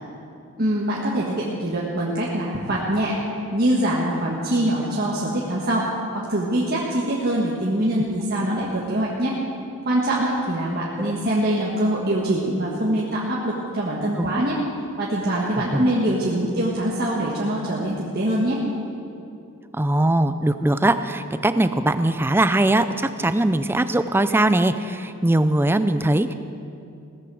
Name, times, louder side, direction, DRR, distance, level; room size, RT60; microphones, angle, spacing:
voice 1, 0.6-3.2 3.5-9.4 9.8-14.6 15.0-18.6, right 1 dB, 45° right, -5 dB, 1.5 m, -23 dB
voice 2, 19.8-26.3, right 1 dB, 10° right, 11 dB, 0.4 m, -21 dB
17.0 x 14.0 x 4.8 m, 2.6 s
head